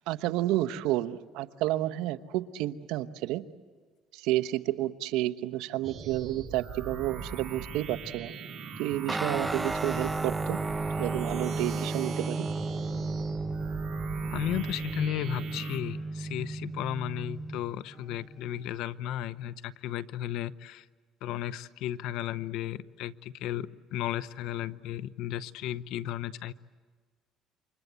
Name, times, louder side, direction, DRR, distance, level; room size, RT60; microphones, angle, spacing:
voice 1, 0.1-3.4 4.1-8.3 8.8-10.6 11.0-12.5, right 15 dB, 85° right, 10 dB, 1.0 m, -30 dB
sound 1, 5.8-15.8, right 5 dB, 45° right, 5.6 m, -41 dB
Guitar, 9.1-18.8, right 3 dB, 10° right, 0.7 m, -34 dB
voice 2, 14.3-20.9 21.2-26.5, left 12 dB, 75° left, 16 dB, 0.8 m, -34 dB
28.5 x 25.5 x 8.2 m, 1.5 s
cardioid pair, 110°, 0 cm